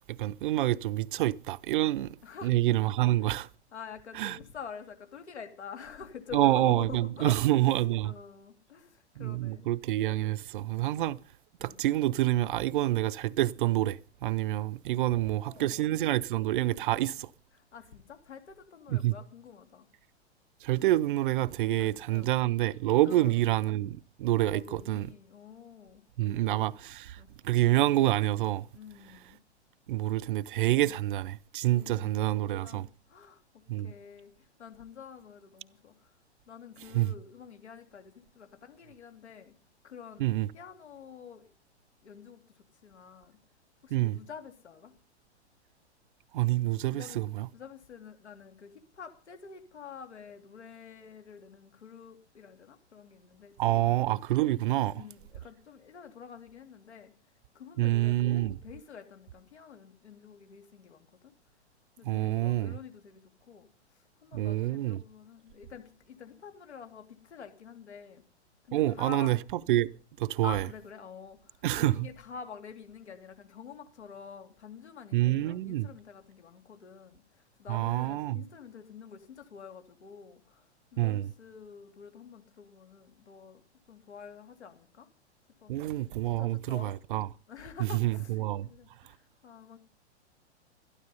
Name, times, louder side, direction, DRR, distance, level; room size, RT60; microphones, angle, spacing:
voice 1, 0.1-2.1 2.4-3.5 4.1-4.4 6.3-8.1 9.2-11.2 11.6-17.3 18.9-19.1 20.6-25.1 26.2-28.7 29.9-32.9 33.7-33.9 36.9-37.1 40.2-40.5 43.9-44.2 46.3-47.5 53.6-55.0 57.8-58.6 62.0-62.7 64.3-65.0 68.7-69.4 69.7-70.6 71.6-72.0 75.1-75.9 77.7-78.4 81.0-81.3 85.7-87.3 87.8-88.7, right 15 dB, 50° right, 0.6 m, -27 dB
voice 2, 2.2-2.5 3.2-3.4 3.7-9.8 10.8-11.1 11.6-11.8 15.0-16.0 16.8-17.2 17.5-19.9 21.7-22.3 23.0-23.4 24.5-26.8 27.2-27.3 28.7-29.4 30.8-30.9 31.7-33.4 33.8-36.2 36.5-39.5 39.8-40.3 40.5-41.4 42.0-43.4 43.8-44.9 46.9-47.2 47.5-54.0 54.9-57.1 57.5-61.3 62.0-68.2 68.6-69.4 70.4-83.6 83.9-85.1 85.6-85.9 86.4-87.0 87.5-89.8, left 6 dB, 75° left, 2.8 m, -48 dB
13.0 x 12.0 x 5.4 m
figure-of-eight pair, 110°, 34 cm